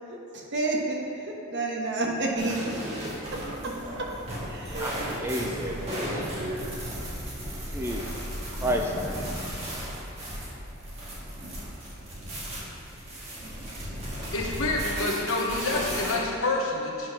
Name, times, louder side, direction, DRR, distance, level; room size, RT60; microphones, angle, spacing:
voice 1, 0.1-3.4 4.5-5.1 5.4-5.5 6.0-6.6, right 2 dB, 55° right, -1 dB, 1.1 m, -31 dB
sound 1, 2.4-16.1, equal, 30° right, 1.8 m, -35 dB
voice 2, 4.8-6.8 7.7-8.1 8.6-9.2, equal, 10° right, 1 dB, 0.4 m, -32 dB
voice 3, 14.3-17.1, left 2 dB, 70° left, -1 dB, 1.2 m, -28 dB
9.2 x 4.2 x 5.6 m, 2.8 s
head